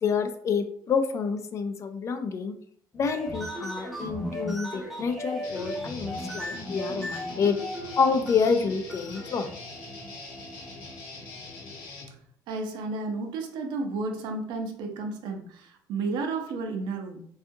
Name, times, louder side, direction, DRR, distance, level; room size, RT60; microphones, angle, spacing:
voice 1, 0.0-2.5 2.9-7.6 8.0-9.5, left 5 dB, 40° left, 7 dB, 0.4 m, -28 dB
sound 1, 2.9-11.2, equal, ahead, 0.6 m, -37 dB
Guitar, 5.4-12.1, left 3 dB, 90° left, 1.0 m, -43 dB
voice 2, 12.5-17.2, right 3 dB, 80° right, 3 dB, 0.6 m, -32 dB
3.6 x 2.3 x 2.6 m, 0.62 s
cardioid pair, 130°, 8 cm